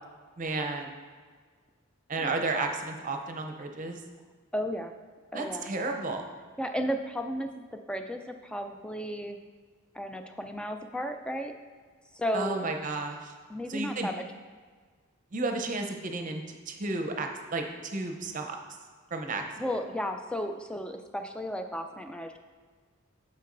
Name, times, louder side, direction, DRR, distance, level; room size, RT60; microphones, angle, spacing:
voice 1, 0.4-0.9 2.1-4.0 5.3-6.3 12.3-13.3 13.7-14.1 15.3-18.6 19.1-19.4, right 3 dB, 35° right, 4 dB, 0.6 m, -32 dB
voice 2, 4.5-4.9 5.3-5.7 6.6-9.4 9.9-11.5 12.1-12.7 13.5-14.2 19.6-22.4, equal, 5° left, 6 dB, 0.3 m, -34 dB
8.3 x 6.7 x 2.6 m, 1.5 s
head